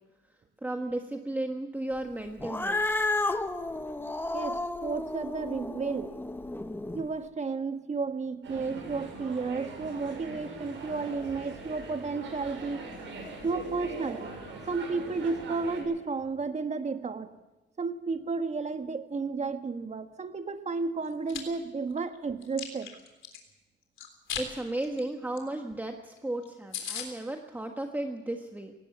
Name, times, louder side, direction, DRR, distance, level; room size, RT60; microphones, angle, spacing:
voice 1, 0.6-2.8 24.4-28.7, right 1 dB, 10° right, 4 dB, 1.5 m, -34 dB
Cat, 2.4-7.0, left 2 dB, 10° left, 1.2 m, -32 dB
voice 2, 4.3-6.1 6.9-12.9 13.4-14.3 14.7-17.3 17.8-22.9, right 4 dB, 35° right, 8 dB, 1.5 m, -32 dB
sound 1, 8.4-15.8, right 2 dB, 75° right, 7.3 m, -42 dB
Chewing mastication, 21.0-21.4 21.9-23.4 24.0-24.5 24.8-25.0 25.4-25.5 25.7-25.8 26.2-26.3 26.4-26.5 26.7-27.1, left 8 dB, 75° left, 3.6 m, -37 dB
18.5 x 17.0 x 8.5 m, 1.1 s
cardioid pair, 90°, 20 cm